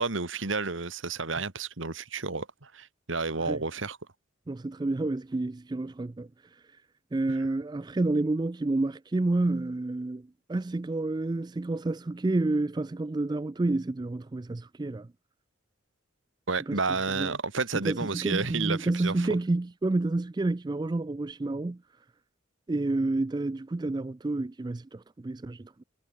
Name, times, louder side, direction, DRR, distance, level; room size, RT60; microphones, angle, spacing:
voice 1, 0.0-4.0 16.5-19.3, right 4 dB, 80° right, 2.0 m, -31 dB
voice 2, 4.5-6.3 7.1-15.1 16.7-16.8 17.2-17.3 17.7-21.8 22.7-25.8, right 2 dB, 20° right, 0.3 m, -29 dB
head